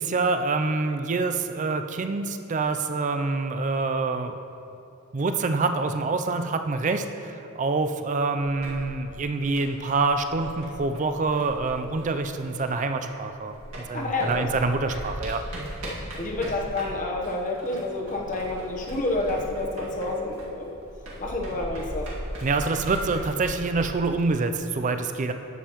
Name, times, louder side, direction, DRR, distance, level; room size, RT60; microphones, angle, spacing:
voice 1, 0.0-4.3 5.1-15.4 22.4-25.3, right 3 dB, 35° right, 8 dB, 0.4 m, -26 dB
sound 1, 8.4-13.3 13.5-23.9, right 1 dB, 70° right, 2.0 m, -39 dB
voice 2, 13.9-14.5 16.2-20.7 21.2-22.1, left 2 dB, 35° left, -1 dB, 1.0 m, -29 dB
11.0 x 7.5 x 3.0 m, 2.8 s
head